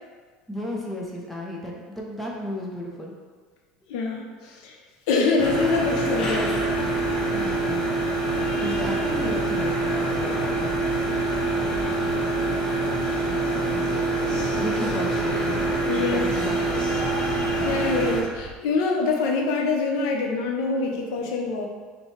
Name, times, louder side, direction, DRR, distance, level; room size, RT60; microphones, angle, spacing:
voice 1, 0.5-3.1 7.3-8.1 8.6-10.5 10.8-11.2 13.2-14.1 14.6-16.9, left 1 dB, 5° left, -3 dB, 0.7 m, -34 dB
voice 2, 3.9-4.8 5.1-6.5 15.9-16.3 17.6-21.7, left 4 dB, 85° left, 1 dB, 0.7 m, -25 dB
sound 1, 5.4-18.2, right 2 dB, 35° left, 0.8 m, -25 dB
sound 2, 6.5-18.5, right 4 dB, 65° right, 0.4 m, -41 dB
5.5 x 2.2 x 3.2 m, 1.5 s
cardioid pair, 140°, 3 cm